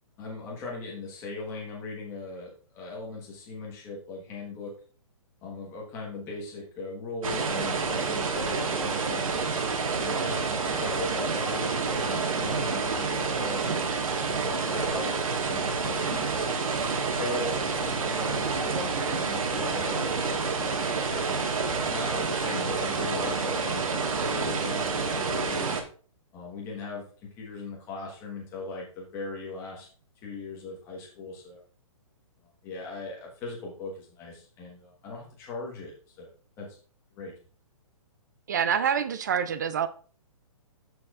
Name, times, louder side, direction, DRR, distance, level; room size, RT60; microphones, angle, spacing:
voice 1, 0.2-4.7 5.4-9.3 9.9-13.7 14.2-16.5 17.1-25.8 26.3-27.1 27.4-29.9 30.2-31.6 32.6-36.8 37.1-37.3, left 3 dB, 15° left, -2 dB, 1.2 m, -39 dB
sound 1, 7.2-25.8, right 4 dB, 70° right, 1.6 m, -28 dB
voice 2, 38.5-39.9, right 8 dB, 30° right, 13 dB, 0.4 m, -26 dB
12.5 x 4.8 x 2.4 m, 0.41 s
hypercardioid pair, 170°, 18 cm